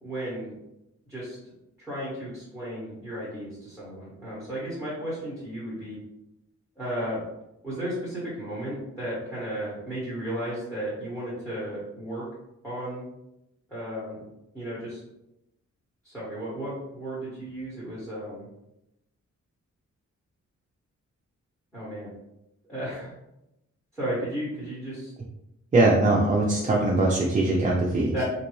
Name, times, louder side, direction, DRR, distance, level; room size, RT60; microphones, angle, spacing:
voice 1, 0.0-0.5 1.1-1.4 1.8-6.0 6.8-7.2 7.6-12.2 12.6-13.1 13.7-14.3 14.5-15.0 16.0-18.5 21.7-22.1 22.7-23.2 23.9-25.1 28.1-28.2, right 1 dB, 5° left, -9 dB, 1.1 m, -34 dB
voice 2, 25.7-28.2, right 2 dB, 25° right, -3 dB, 0.4 m, -21 dB
4.0 x 2.6 x 3.1 m, 0.88 s
wide cardioid pair, 175°, 29 cm